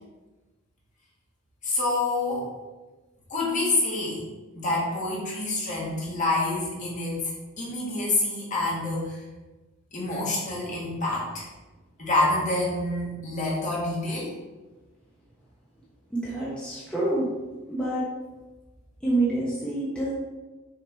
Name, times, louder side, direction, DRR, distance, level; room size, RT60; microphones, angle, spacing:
voice 1, 1.6-2.5 3.3-4.2 4.6-9.2 9.9-11.5 12.0-14.3, left 2 dB, 35° left, -5 dB, 1.8 m, -27 dB
voice 2, 16.1-17.3 17.6-18.0 19.0-20.1, right 2 dB, 5° left, -8 dB, 1.0 m, -27 dB
6.5 x 4.7 x 3.5 m, 1.2 s
head